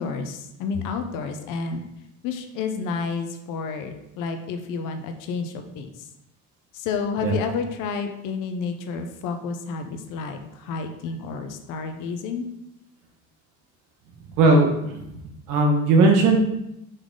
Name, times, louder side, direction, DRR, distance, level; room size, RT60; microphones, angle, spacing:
voice 1, 0.0-1.8 2.2-5.9 6.7-12.4, left 5 dB, 80° left, 6 dB, 0.9 m, -30 dB
voice 2, 14.4-15.1 15.5-16.4, right 3 dB, 75° right, 2 dB, 1.4 m, -18 dB
6.7 x 4.1 x 3.8 m, 0.85 s
cardioid pair, 175°, 31 cm